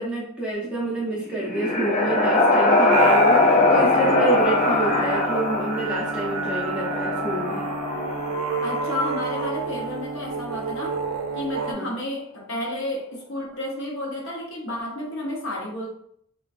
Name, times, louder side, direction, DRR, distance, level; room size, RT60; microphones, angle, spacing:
voice 1, 0.0-7.7 11.7-12.0, right 2 dB, 5° right, -6 dB, 0.6 m, -28 dB
sound 1, 1.1-8.9, left 2 dB, 35° left, 0.3 m, -21 dB
sound 2, 2.9-11.7, right 3 dB, 75° right, 0.4 m, -30 dB
voice 2, 8.6-11.0 11.3-15.9, left 1 dB, 60° left, -2 dB, 0.8 m, -31 dB
3.4 x 2.2 x 2.4 m, 0.69 s
head